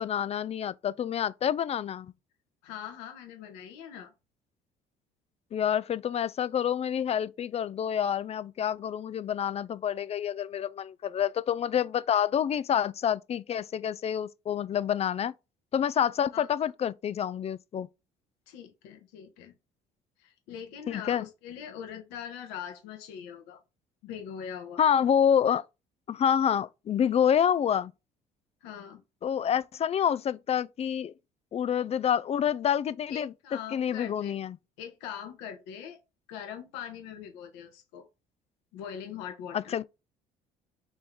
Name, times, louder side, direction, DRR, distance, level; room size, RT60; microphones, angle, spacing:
voice 1, 0.0-2.1 5.5-15.3 15.7-17.9 20.9-21.2 24.8-25.6 26.1-27.9 29.2-31.1 31.5-33.3 33.7-34.6 39.5-39.8, left 9 dB, 35° left, 0.4 m, -27 dB
voice 2, 2.6-4.1 16.3-16.5 18.5-19.5 20.2-23.6 24.0-24.8 28.6-29.0 33.1-34.4 34.8-36.0 36.3-38.0 38.7-39.8, left 8 dB, 75° left, 1.2 m, -42 dB
4.3 x 3.1 x 3.5 m
hypercardioid pair, 60°, 18 cm